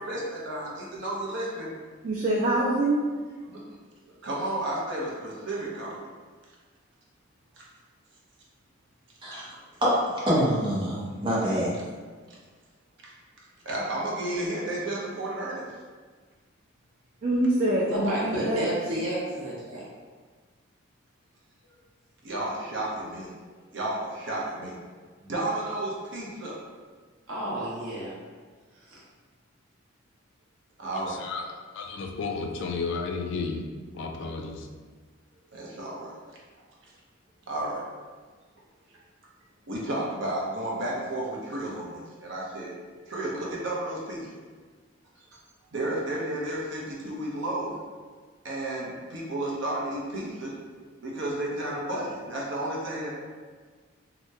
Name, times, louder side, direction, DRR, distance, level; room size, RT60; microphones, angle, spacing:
voice 1, 0.0-1.7 3.5-3.6 4.2-6.1 7.6-7.7 12.3-12.4 13.0-13.1 13.4-15.7 22.2-23.3 23.7-24.8 25.2-26.6 30.8-31.3 35.5-36.1 37.5-37.8 39.7-42.7 43.1-44.4 45.3-45.4 45.7-47.8 48.4-50.6 51.0-53.1, right 1 dB, 60° right, -4 dB, 0.7 m, -32 dB
voice 2, 2.0-3.0 17.2-17.9 18.2-18.7, right 1 dB, 40° right, -4 dB, 0.3 m, -24 dB
voice 3, 9.8-11.8, equal, 25° right, -7 dB, 0.7 m, -25 dB
voice 4, 17.9-19.8 27.3-28.1 28.8-29.0, right 1 dB, 80° right, -7 dB, 1.0 m, -30 dB
voice 5, 31.1-33.6 33.9-34.7, left 4 dB, 60° left, 3 dB, 0.3 m, -33 dB
2.8 x 2.1 x 3.4 m, 1.5 s
head